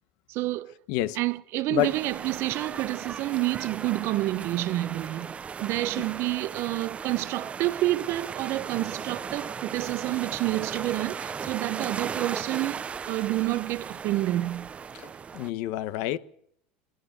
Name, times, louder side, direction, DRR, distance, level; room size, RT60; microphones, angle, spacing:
voice 1, 0.3-0.7 1.2-5.3 5.6-14.7, right 17 dB, 55° right, 1.2 m, -29 dB
voice 2, 0.9-1.2 1.7-1.9 14.9-16.2, left 14 dB, 65° left, 1.1 m, -28 dB
sound 1, 1.8-15.5, right 6 dB, 25° right, 0.8 m, -37 dB
22.0 x 18.0 x 6.7 m
supercardioid pair, 110°, 5 cm